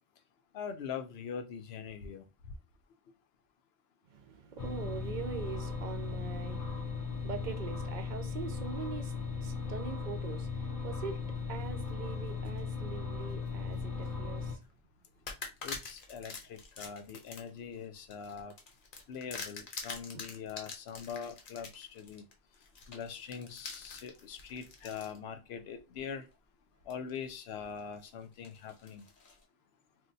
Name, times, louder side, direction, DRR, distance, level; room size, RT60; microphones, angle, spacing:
voice 1, 0.5-2.2 15.6-18.5 19.1-22.2 22.9-26.3 26.9-29.1, left 7 dB, 90° left, 0.8 m, -42 dB
voice 2, 4.0-14.6 20.1-20.2, right 6 dB, 60° right, 0.6 m, -43 dB
sound 1, 4.6-14.6, left 5 dB, 25° left, 0.5 m, -37 dB
sound 2, 11.4-12.6 13.2-14.1 14.6-14.7 15.3-25.2 25.8-25.9 26.9-27.4 27.8-29.4, left 4 dB, 60° left, 0.9 m, -46 dB
2.7 x 2.2 x 3.9 m
omnidirectional pair, 1.0 m